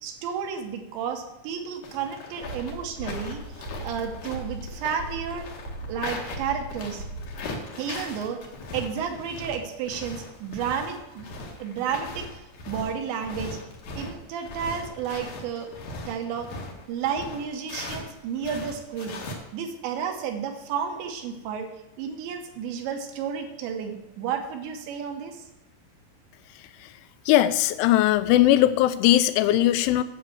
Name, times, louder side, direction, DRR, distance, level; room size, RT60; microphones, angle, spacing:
voice 1, 0.0-5.5 5.9-7.0 7.8-8.4 8.7-11.3 11.6-12.3 12.7-13.6 13.9-15.7 16.1-16.5 16.9-19.2 19.5-21.7 22.0-25.4, right 7 dB, 75° right, 5 dB, 3.1 m, -32 dB
sound 1, 1.8-18.1 18.4-19.4, left 3 dB, 55° left, 2.3 m, -39 dB
sound 2, 2.4-7.5, right 1 dB, 50° right, 1.7 m, -39 dB
voice 2, 27.3-30.0, left 14 dB, 85° left, 13 dB, 2.9 m, -19 dB
10.5 x 7.1 x 7.7 m, 1.0 s
omnidirectional pair, 5.6 m